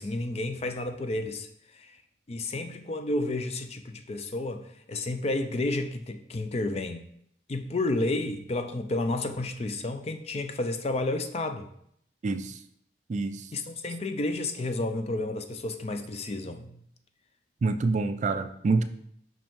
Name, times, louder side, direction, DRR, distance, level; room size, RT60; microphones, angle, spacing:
voice 1, 0.0-1.5 1.7-2.0 2.3-7.0 7.5-11.7 13.5-16.8, left 2 dB, 35° left, 7 dB, 0.4 m, -31 dB
voice 2, 12.2-12.6 13.1-13.5 17.6-18.8, right 3 dB, 40° right, 10 dB, 0.3 m, -27 dB
5.4 x 5.1 x 3.6 m, 0.71 s
head